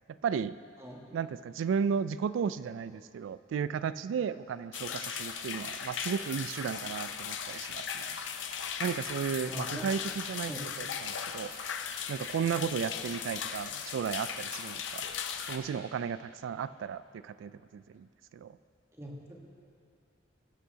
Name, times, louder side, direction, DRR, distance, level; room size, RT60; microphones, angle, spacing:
voice 1, 0.1-0.6 1.1-8.2 8.8-10.5 10.8-11.5 12.1-15.1 15.5-18.6, right 7 dB, 80° right, 16 dB, 0.3 m, -34 dB
voice 2, 0.8-1.2 9.4-9.8 10.5-10.6 19.0-19.4, equal, 15° right, -2 dB, 1.3 m, -42 dB
sound 1, 4.7-15.6, left 7 dB, 70° left, 0.6 m, -37 dB
19.0 x 8.2 x 2.8 m, 2.5 s
head